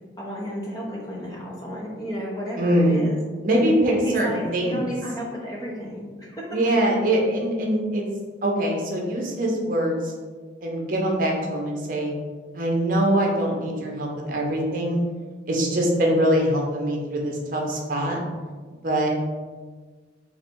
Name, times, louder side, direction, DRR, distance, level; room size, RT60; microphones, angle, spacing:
voice 1, 0.2-3.2 3.9-6.6, equal, 20° left, -4 dB, 0.7 m, -32 dB
voice 2, 2.6-3.1 3.4-4.8 6.5-8.0 8.4-10.1 10.6-12.1 12.5-15.0 15.5-18.2 18.8-19.1, right 1 dB, 45° right, -1 dB, 0.7 m, -23 dB
3.2 x 2.6 x 4.5 m, 1.5 s
head